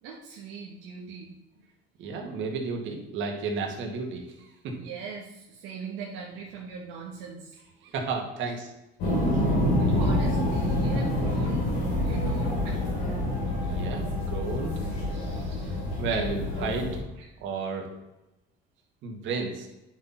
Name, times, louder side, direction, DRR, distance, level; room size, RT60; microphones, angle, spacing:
voice 1, 0.0-1.3 4.8-7.6 8.4-8.5 9.3-9.5 9.8-12.8 13.1-13.2 13.5-13.6 15.1-16.3 16.8-17.3, right 5 dB, 90° right, -3 dB, 1.4 m, -41 dB
voice 2, 2.0-4.8 7.8-8.7 9.5-9.6 13.6-15.0 16.0-16.9 17.4-17.9 19.0-19.7, right 4 dB, 70° right, 2 dB, 2.1 m, -32 dB
sound 1, 9.0-17.0, left 1 dB, 85° left, 2.8 m, -27 dB
9.5 x 6.1 x 4.2 m, 0.95 s
cardioid pair, 95°, 20 cm